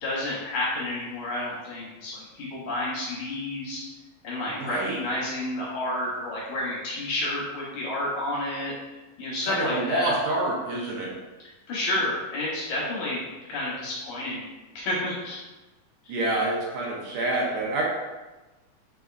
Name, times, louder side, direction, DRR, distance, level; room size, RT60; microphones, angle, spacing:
voice 1, 0.0-3.8 4.2-8.7 9.2-10.2 11.7-13.2 13.5-14.4 14.8-15.4 16.0-16.1, left 1 dB, 65° left, -6 dB, 2.2 m, -30 dB
voice 2, 4.6-5.0 9.4-11.1 16.1-17.8, right 2 dB, 75° right, -3 dB, 2.1 m, -27 dB
5.1 x 4.2 x 2.4 m, 1.1 s
omnidirectional pair, 4.1 m